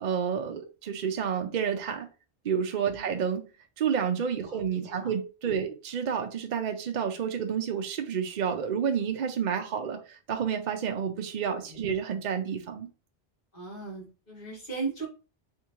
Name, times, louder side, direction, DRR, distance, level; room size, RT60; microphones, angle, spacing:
voice 1, 0.0-2.1 2.4-3.4 3.8-12.9, right 7 dB, 55° right, 5 dB, 0.6 m, -30 dB
voice 2, 13.5-15.1, right 4 dB, 60° left, -5 dB, 2.1 m, -38 dB
3.6 x 3.6 x 3.0 m, 0.34 s
omnidirectional pair, 1.1 m